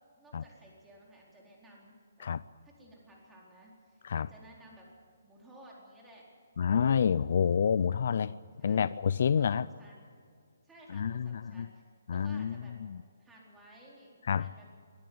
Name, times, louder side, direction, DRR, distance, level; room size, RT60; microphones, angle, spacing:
voice 1, 0.2-2.3 2.6-4.9 5.2-6.3 7.1-7.3 8.6-8.9 9.2-9.9 10.6-11.8 12.1-12.8 13.2-14.7, right 1 dB, 5° right, -3 dB, 4.3 m, -56 dB
voice 2, 6.6-8.3 8.6-9.7 10.9-11.7 12.1-12.5 12.8-13.0 14.3-14.5, left 7 dB, 55° left, 18 dB, 0.4 m, -28 dB
23.0 x 13.0 x 9.5 m, 2.1 s
hypercardioid pair, 165°, 0 cm